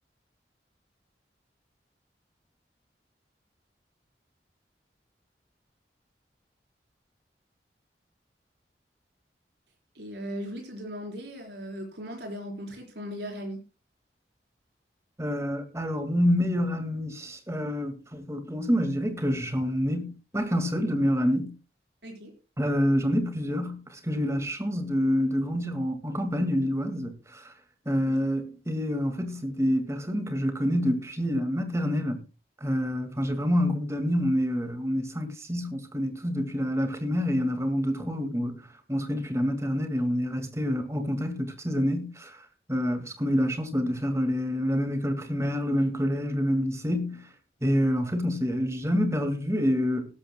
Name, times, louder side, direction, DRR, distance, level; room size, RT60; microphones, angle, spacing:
voice 1, 9.9-13.6 22.0-22.3 28.1-28.2, equal, 75° right, 4.2 m, -38 dB
voice 2, 15.2-21.5 22.6-27.5 27.9-32.2 32.6-38.6 38.9-42.4 42.7-47.3 47.6-50.2, equal, 15° right, 2.0 m, -27 dB
18.0 x 13.0 x 2.2 m
head